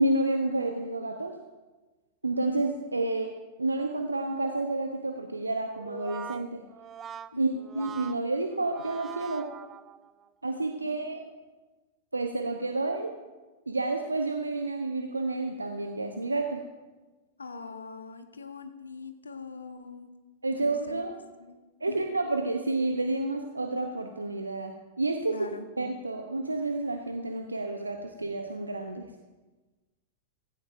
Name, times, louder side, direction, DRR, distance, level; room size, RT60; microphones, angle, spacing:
voice 1, 0.0-1.3 2.2-3.3 3.6-6.6 7.4-9.5 10.4-11.2 12.1-13.1 13.7-16.6 20.4-21.2 21.8-25.4 25.8-29.1, right 2 dB, 80° right, 5 dB, 0.8 m, -30 dB
Brass instrument, 5.8-10.3, right 9 dB, 25° right, 0.4 m, -43 dB
voice 2, 17.4-20.1 20.5-21.0 21.4-21.6 21.9-22.0 25.3-25.7, left 4 dB, 75° left, 8 dB, 1.1 m, -42 dB
16.0 x 15.0 x 2.6 m, 1.2 s
figure-of-eight pair, 95°, 0 cm